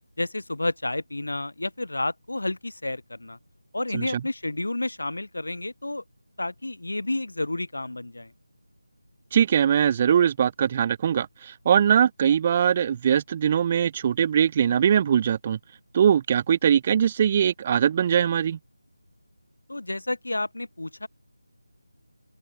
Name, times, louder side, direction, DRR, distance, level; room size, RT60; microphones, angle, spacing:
voice 1, 0.2-3.4 3.7-6.0 6.4-8.3 19.7-21.1, left 2 dB, 70° left, 0.8 m, -30 dB
voice 2, 9.3-15.6 15.9-18.6, right 8 dB, 25° right, 0.4 m, -21 dB
open air
figure-of-eight pair, 160°, 0 cm